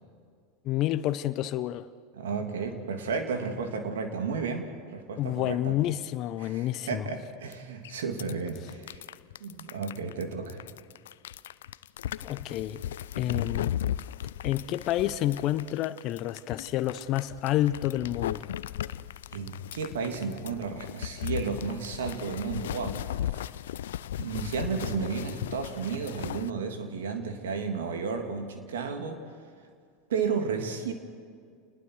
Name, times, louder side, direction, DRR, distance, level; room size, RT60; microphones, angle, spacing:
voice 1, 0.6-1.9 5.2-7.1 12.2-12.8 13.1-13.8 14.4-18.5, left 13 dB, 50° left, 0.8 m, -29 dB
voice 2, 2.1-5.8 6.4-9.0 9.4-10.6 19.3-23.3 24.2-29.2 30.1-30.9, right 5 dB, 80° right, 2.9 m, -33 dB
sound 1, 7.5-7.6 7.8-26.5, left 11 dB, 80° left, 0.5 m, -36 dB
30.0 x 20.5 x 4.9 m
hypercardioid pair, 90°, 0 cm